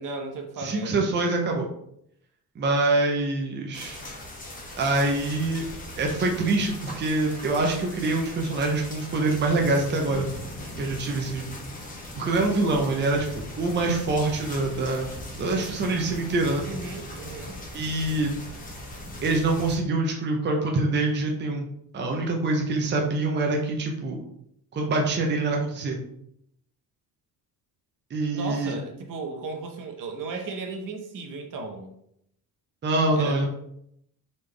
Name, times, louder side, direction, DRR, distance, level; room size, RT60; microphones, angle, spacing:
voice 1, 0.0-1.3 16.6-17.6 28.3-31.9 33.2-33.4, right 3 dB, 55° right, 4 dB, 0.9 m, -35 dB
voice 2, 0.6-1.7 2.6-4.0 4.8-5.6 6.0-10.3 10.8-11.5 12.1-15.1 15.4-16.7 17.7-18.3 19.2-21.7 21.9-24.2 24.7-26.0 28.1-28.7 32.8-33.5, right 2 dB, 30° right, 1 dB, 0.7 m, -25 dB
sound 1, 3.7-19.8, left 1 dB, 20° left, 1.0 m, -39 dB
4.2 x 3.4 x 3.2 m, 0.74 s
cardioid pair, 120°, 38 cm